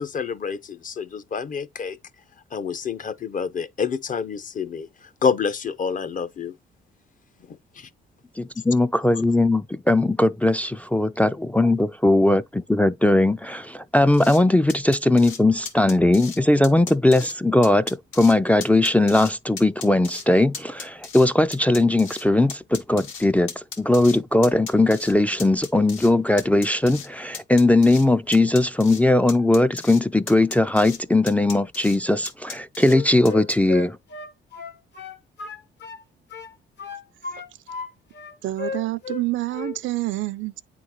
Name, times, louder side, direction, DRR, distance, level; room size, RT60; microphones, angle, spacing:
voice 1, 0.0-2.0 2.5-6.5 7.5-7.9 9.1-9.2, left 6 dB, 40° left, 0.7 m, -28 dB
voice 2, 8.4-34.0, left 2 dB, 5° left, 0.3 m, -19 dB
sound 1, 14.1-14.4 14.7-15.4 15.7-16.4 16.6-17.3 17.6-18.3 18.6-19.3 19.6-20.2 20.5-22.2 22.5-24.2 24.4-25.1 25.4-26.1 26.4-27.1 27.3-28.1 28.3-29.0 29.3-30.0 30.3-31.0 31.3-32.0 32.2-33.0 33.2-33.6, left 6 dB, 75° left, 1.7 m, -36 dB
Wind instrument woodwind instrument, 32.8-36.0 36.3-37.9 38.1-39.3 39.5-39.8, left 5 dB, 60° left, 1.2 m, -34 dB
voice 3, 38.4-40.6, right 17 dB, 75° right, 0.5 m, -27 dB
9.0 x 3.8 x 2.9 m
cardioid pair, 90°, 20 cm